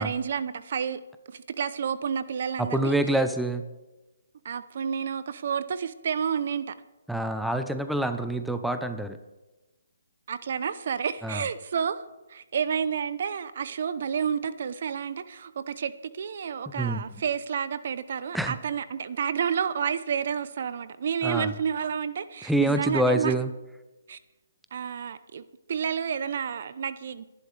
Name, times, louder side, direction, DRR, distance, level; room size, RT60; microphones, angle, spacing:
voice 1, 0.0-3.0 4.4-6.7 10.3-12.0 12.3-23.3 24.1-24.2 24.7-25.4 25.7-27.2, right 7 dB, 55° right, 14 dB, 0.7 m, -30 dB
voice 2, 2.6-3.7 7.1-9.2 11.2-11.4 16.8-17.0 18.3-18.5 21.2-21.5 22.4-23.5, right 1 dB, ahead, 8 dB, 0.7 m, -26 dB
28.0 x 11.0 x 3.4 m, 1.1 s
hypercardioid pair, 150°, 0 cm